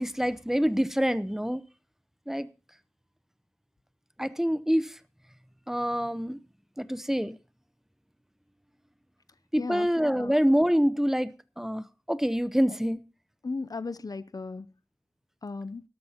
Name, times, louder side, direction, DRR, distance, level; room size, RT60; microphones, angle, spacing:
voice 1, 0.0-1.6 2.3-2.5 4.2-5.0 5.7-6.4 6.8-7.4 9.5-11.3 11.6-13.0, equal, 5° right, 14 dB, 0.9 m, -26 dB
voice 2, 9.6-9.9 10.2-10.3 13.4-14.7 15.4-15.8, left 3 dB, 70° left, 16 dB, 0.6 m, -35 dB
17.5 x 12.5 x 2.9 m, 0.32 s
wide cardioid pair, 50°, 7 cm